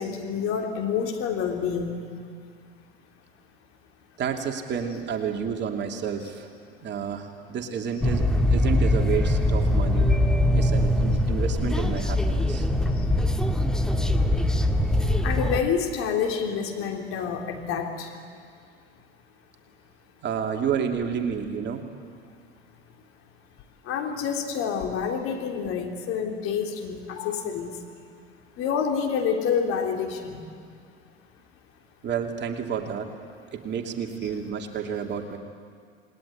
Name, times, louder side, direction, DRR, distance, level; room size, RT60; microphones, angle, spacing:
voice 1, 0.0-2.3 12.9-13.1 15.2-18.2 23.8-27.8 28.6-30.4, left 7 dB, 40° left, 2 dB, 3.5 m, -28 dB
voice 2, 4.2-6.5 6.8-8.2 8.5-10.1 10.5-12.7 20.2-21.8 32.0-33.1 33.5-35.4, right 7 dB, 35° right, 3 dB, 2.7 m, -30 dB
sound 1, 8.0-15.6, left 1 dB, ahead, 1.6 m, -22 dB
28.0 x 20.5 x 9.9 m, 2.2 s
figure-of-eight pair, 75°, 32 cm